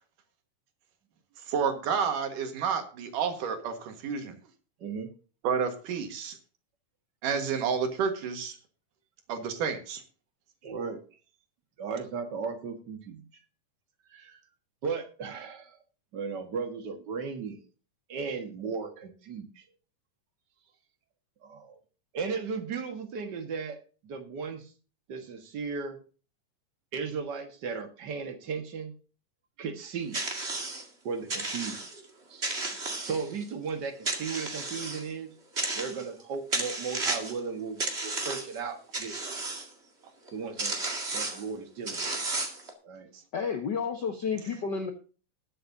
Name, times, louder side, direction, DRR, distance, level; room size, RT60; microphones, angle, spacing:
voice 1, 1.5-4.3 5.4-6.4 7.2-8.6 9.3-10.0 43.1-43.2, right 6 dB, 80° right, 7 dB, 3.2 m, -30 dB
voice 2, 4.8-5.1 10.6-11.0 11.8-13.2 14.1-14.4 14.8-15.8 16.1-17.6 18.1-19.6 21.4-21.8 22.1-24.7 25.1-26.0 26.9-28.9 29.6-30.2 31.0-32.5 33.0-35.3 35.7-39.4 40.3-40.8 41.1-42.2 42.8-43.1, right 5 dB, 45° right, 6 dB, 1.6 m, -36 dB
sound 1, 30.1-30.8 31.3-32.0 32.4-33.5 34.1-35.0 35.6-36.2 36.5-37.4 37.8-38.6 38.9-39.7 40.3-40.4 40.6-41.4 41.9-42.7, right 2 dB, 25° right, 1.8 m, -33 dB
voice 3, 43.3-44.9, left 6 dB, 65° left, 6 dB, 1.0 m, -31 dB
20.0 x 7.8 x 2.7 m, 0.37 s
omnidirectional pair, 3.7 m